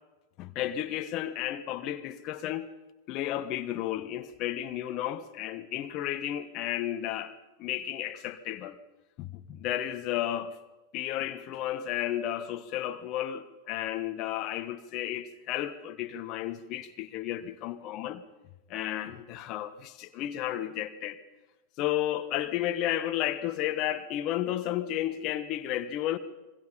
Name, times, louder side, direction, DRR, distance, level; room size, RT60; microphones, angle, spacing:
voice 1, 0.4-2.7 3.1-8.8 9.2-10.6 10.9-18.2 18.7-21.2 21.8-26.2, left 12 dB, 40° left, 1.2 m, -33 dB
26.5 x 22.5 x 5.3 m
figure-of-eight pair, 90°, 0 cm